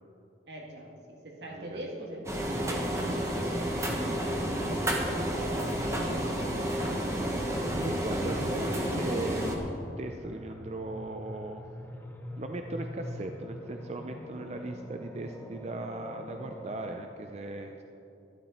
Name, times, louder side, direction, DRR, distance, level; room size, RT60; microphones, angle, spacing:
voice 1, 0.5-2.9 3.9-4.1 4.9-6.5 8.2-8.8, right 1 dB, 75° right, -1 dB, 2.0 m, -43 dB
voice 2, 1.5-1.8 2.6-2.8 3.3-3.7 4.6-4.8 7.7-11.6 12.4-17.8, right 2 dB, 35° right, 5 dB, 0.5 m, -38 dB
sound 1, 2.3-9.6, equal, 15° right, 1.1 m, -31 dB
sound 2, 2.5-17.0, equal, 10° left, 0.9 m, -44 dB
12.0 x 11.5 x 4.3 m, 2.8 s
head